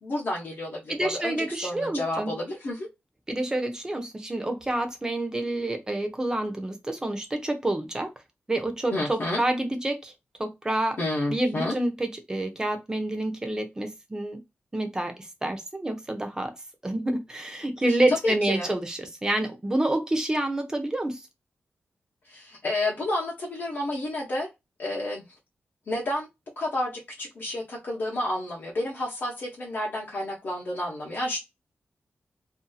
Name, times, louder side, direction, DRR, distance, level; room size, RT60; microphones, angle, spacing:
voice 1, 0.0-2.9 8.9-9.4 11.0-11.7 18.1-18.7 22.2-24.5 24.8-25.2 25.9-26.3 26.6-31.4, left 1 dB, 50° left, 0.8 m, -30 dB
voice 2, 0.9-2.3 3.3-8.1 8.5-10.1 10.4-11.0 11.3-14.4 14.7-16.5 16.8-21.2, right 1 dB, 15° right, 0.6 m, -28 dB
2.7 x 2.6 x 2.2 m
wide cardioid pair, 150°, 4 cm